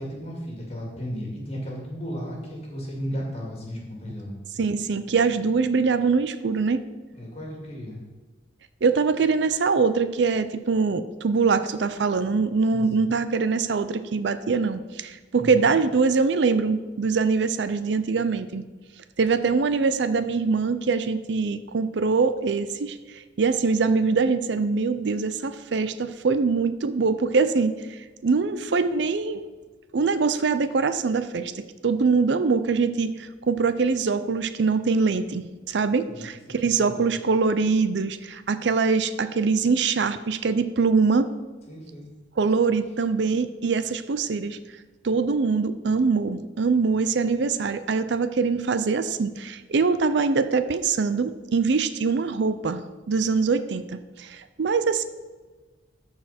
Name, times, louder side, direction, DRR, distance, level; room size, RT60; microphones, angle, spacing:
voice 1, 0.0-4.4 7.1-8.0 12.7-13.1 15.3-15.7 36.1-37.1 41.7-42.1, equal, 35° left, -2 dB, 2.4 m, -35 dB
voice 2, 4.6-6.8 8.8-18.6 19.2-29.5 29.9-41.3 42.4-44.6 45.0-55.0, right 4 dB, 75° right, 12 dB, 0.5 m, -23 dB
13.5 x 4.8 x 4.3 m, 1.3 s
head